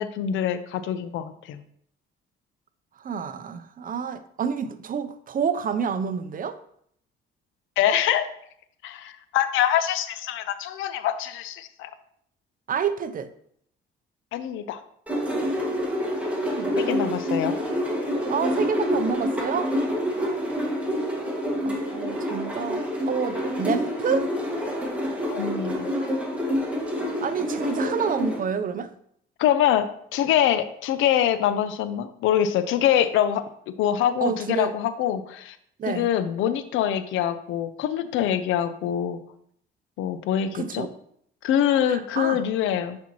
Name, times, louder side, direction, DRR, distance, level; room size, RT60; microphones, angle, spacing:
voice 1, 0.0-1.6 7.8-8.3 8.8-11.9 14.3-14.8 16.8-17.6 25.3-25.9 29.4-35.6 35.9-39.2 40.0-40.9 41.4-43.0, left 10 dB, 90° left, 0.5 m, -24 dB
voice 2, 3.0-6.6 12.7-13.3 16.4-16.9 18.3-19.7 21.6-24.3 27.2-28.9 34.2-34.7 35.8-36.1 40.5-40.9 41.9-42.4, right 6 dB, 45° right, 0.5 m, -28 dB
sound 1, 15.1-28.4, equal, 5° right, 1.5 m, -27 dB
8.3 x 4.3 x 2.9 m
cardioid pair, 90°, 20 cm